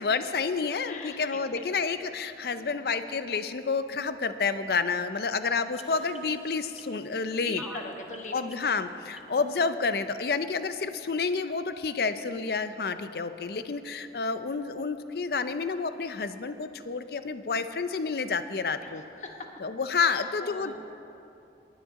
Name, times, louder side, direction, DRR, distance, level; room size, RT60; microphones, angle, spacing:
voice 1, 0.0-7.6 8.3-19.0 19.6-20.7, left 4 dB, 60° left, 11 dB, 0.5 m, -29 dB
voice 2, 0.9-1.6 2.5-2.9 5.3-5.4 7.4-8.7 9.2-9.4 18.8-19.5 20.0-20.7, left 3 dB, 40° left, 3 dB, 1.1 m, -42 dB
sound 1, 5.7-9.7 10.3-10.4, right 1 dB, 5° right, 0.5 m, -48 dB
18.5 x 10.0 x 3.7 m, 2.7 s
head